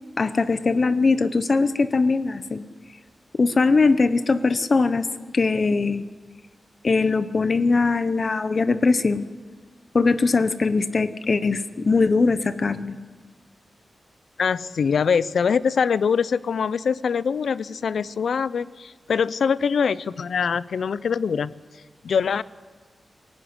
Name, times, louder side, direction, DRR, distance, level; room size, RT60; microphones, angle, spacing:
voice 1, 0.2-2.6 3.4-5.1 5.3-6.0 6.8-9.3 9.9-13.0, left 4 dB, 40° left, 12 dB, 0.9 m, -21 dB
voice 2, 14.4-21.5 22.0-22.4, left 6 dB, 75° left, 18 dB, 0.6 m, -23 dB
24.0 x 15.0 x 9.7 m, 1.5 s
wide cardioid pair, 150°, 0 cm